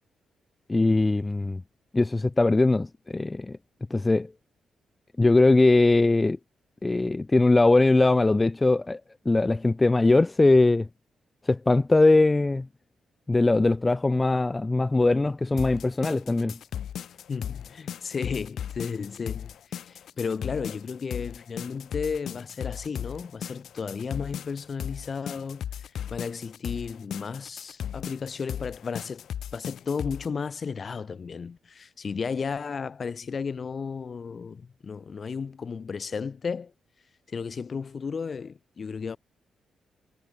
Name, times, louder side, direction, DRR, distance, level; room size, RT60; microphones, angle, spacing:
voice 1, 0.7-1.6 1.9-3.6 3.9-4.3 5.2-6.4 6.8-9.0 9.3-10.9 11.5-12.7 13.3-16.6, left 2 dB, 15° left, 1.8 m, -21 dB
sound 1, 15.6-30.3, left 9 dB, 70° left, 2.7 m, -36 dB
voice 2, 17.3-25.7 26.1-29.3 29.5-36.7 37.3-39.2, left 5 dB, 40° left, 3.3 m, -34 dB
cardioid pair, 125°, 0 cm